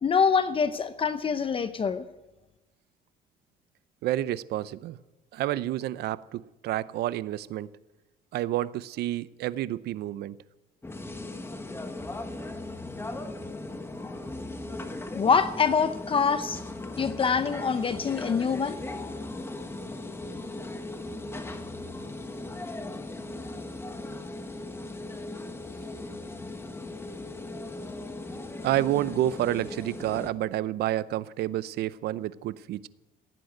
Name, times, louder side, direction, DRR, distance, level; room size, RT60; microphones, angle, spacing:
voice 1, 0.0-2.0 15.1-16.6 17.0-18.8, left 6 dB, 30° left, 12 dB, 0.7 m, -25 dB
voice 2, 4.0-5.0 5.3-7.7 8.3-10.4 28.6-32.9, right 13 dB, 70° right, 17 dB, 0.7 m, -29 dB
sound 1, 10.8-30.3, left 2 dB, 15° left, 1.4 m, -38 dB
16.0 x 9.3 x 9.2 m, 1.0 s
cardioid pair, 110°, 17 cm